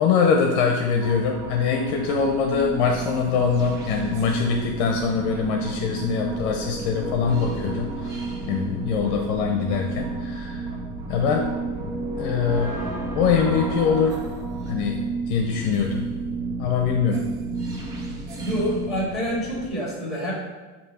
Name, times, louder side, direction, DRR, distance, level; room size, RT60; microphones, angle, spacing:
voice 1, 0.0-8.1 8.5-10.7 11.1-11.5 11.8-11.9 12.2-12.8 13.1-14.2 14.7-16.0 16.6-17.3, left 6 dB, 50° left, 2 dB, 0.6 m, -23 dB
sound 1, 0.8-19.7, right 3 dB, 55° right, 1.4 m, -32 dB
voice 2, 18.4-20.3, equal, ahead, -4 dB, 1.8 m, -27 dB
8.0 x 2.8 x 4.9 m, 1.3 s
cardioid pair, 170°, 45 cm